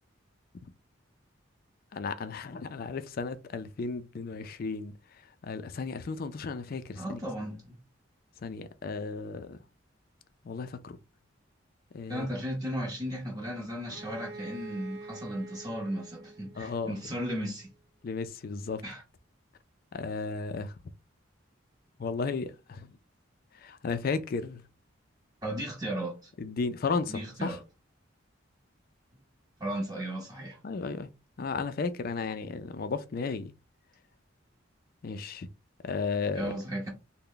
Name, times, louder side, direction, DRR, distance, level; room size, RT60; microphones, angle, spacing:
voice 1, 1.9-4.9 5.4-7.2 8.4-9.6 10.4-11.0 11.9-12.3 16.6-16.9 18.0-18.8 19.9-20.7 22.0-22.9 23.6-24.6 26.4-27.6 30.6-31.1 31.4-33.5 35.0-35.5 35.8-36.5, left 4 dB, 45° left, 0.4 m, -34 dB
voice 2, 7.0-7.8 12.1-17.7 18.8-19.0 25.4-26.3 27.1-27.6 29.6-30.6 36.3-36.9, equal, 20° right, 0.8 m, -35 dB
Bowed string instrument, 13.9-17.6, right 3 dB, 55° right, 0.5 m, -46 dB
3.3 x 2.1 x 3.7 m
head